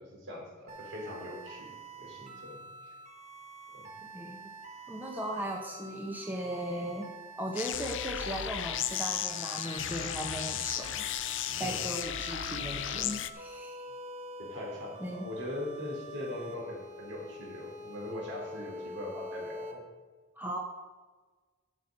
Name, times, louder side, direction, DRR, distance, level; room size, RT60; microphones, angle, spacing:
voice 1, 0.0-1.7 2.0-2.9 3.7-3.8 11.6-11.8 14.4-19.8, left 1 dB, 65° right, -2 dB, 3.6 m, -41 dB
sound 1, 0.7-19.7, right 1 dB, 35° right, 1.4 m, -46 dB
voice 2, 4.1-4.5 4.9-7.1 7.4-10.9 11.6-13.8 15.0-15.3 20.4-20.6, right 1 dB, 10° right, 0 dB, 1.0 m, -37 dB
sound 2, 7.6-13.3, left 11 dB, 65° left, 0.5 m, -35 dB
12.5 x 6.6 x 5.4 m, 1.4 s
head